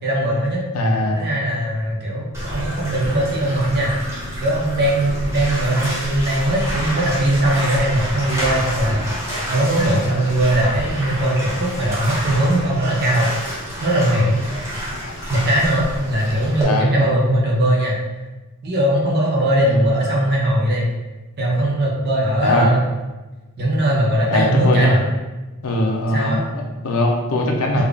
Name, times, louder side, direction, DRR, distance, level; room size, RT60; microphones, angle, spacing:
voice 1, 0.0-0.6 1.1-4.0 4.4-9.1 9.5-13.3 13.8-14.4 15.3-18.0 18.6-20.9 21.4-22.8 23.6-25.1 26.1-26.4 27.8-27.9, right 1 dB, 50° right, -3 dB, 0.6 m, -19 dB
voice 2, 0.7-1.2 14.9-15.1 16.6-16.9 19.6-19.9 22.4-22.7 24.3-25.0 25.6-27.9, left 1 dB, 75° left, 0 dB, 0.6 m, -20 dB
Bathtub (filling or washing), 2.3-16.6, equal, 15° right, 0.9 m, -28 dB
3.5 x 2.4 x 3.4 m, 1.1 s
head